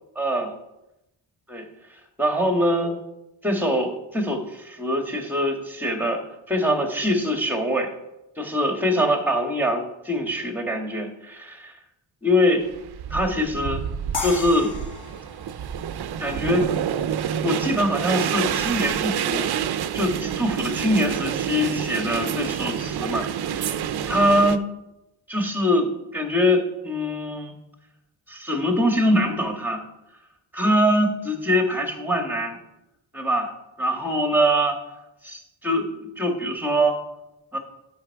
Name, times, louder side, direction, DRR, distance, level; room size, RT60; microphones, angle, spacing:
voice 1, 0.2-0.5 1.5-1.6 2.2-2.9 3.4-7.9 8.4-11.7 12.2-12.7 13.1-13.8 14.2-14.7 16.2-16.7 17.4-19.6 19.9-24.6 25.3-27.5 28.3-29.9 30.5-32.6 33.1-33.5 33.8-34.8 35.2-37.0 37.5-37.6, equal, 5° right, 3 dB, 1.6 m, -23 dB
sound 1, 12.6-24.6, right 9 dB, 55° right, 0.6 m, -28 dB
sound 2, 14.1-17.2, left 4 dB, 45° left, 1.7 m, -36 dB
12.5 x 5.6 x 4.7 m, 0.92 s
wide cardioid pair, 115°, 46 cm